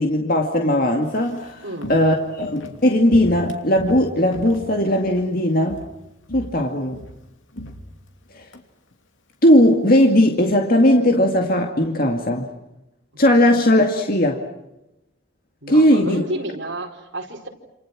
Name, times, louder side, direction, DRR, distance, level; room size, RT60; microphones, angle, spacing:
voice 1, 0.0-1.6 1.9-5.8 6.3-7.0 9.4-12.5 13.2-14.4 15.7-16.2, left 1 dB, 45° left, 3 dB, 2.3 m, -18 dB
Walk footsteps, 1.0-5.4 5.6-6.0 6.3-8.6 8.9-9.0, equal, 80° left, 2.9 m, -37 dB
voice 2, 1.6-2.0 13.1-13.2 15.6-17.5, right 1 dB, 65° right, 1 dB, 4.9 m, -31 dB
29.5 x 28.5 x 6.3 m, 0.93 s
head